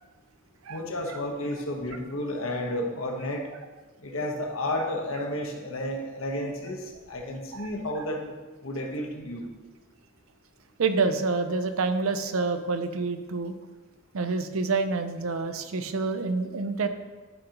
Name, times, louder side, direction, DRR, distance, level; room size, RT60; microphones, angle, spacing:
voice 1, 0.7-3.5 4.0-8.4 8.6-9.5, left 1 dB, 75° left, 1 dB, 1.2 m, -32 dB
voice 2, 10.8-13.5 14.1-16.9, right 4 dB, 80° right, 9 dB, 0.6 m, -27 dB
10.5 x 5.1 x 2.9 m, 1.2 s
head